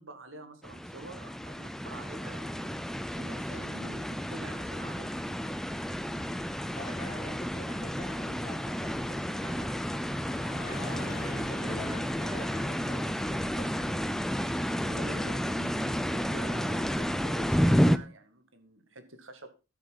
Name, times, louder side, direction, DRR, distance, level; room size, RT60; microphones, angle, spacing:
voice 1, 0.0-2.8 3.1-5.6 14.8-19.5, right 1 dB, 80° right, 2.0 m, -47 dB
sound 1, 0.6-18.0, equal, ahead, 0.5 m, -31 dB
voice 2, 6.7-9.7 10.6-14.0, left 1 dB, 30° left, 3.2 m, -45 dB
sound 2, 7.5-16.6, left 2 dB, 50° left, 1.4 m, -49 dB
13.0 x 7.8 x 4.1 m
head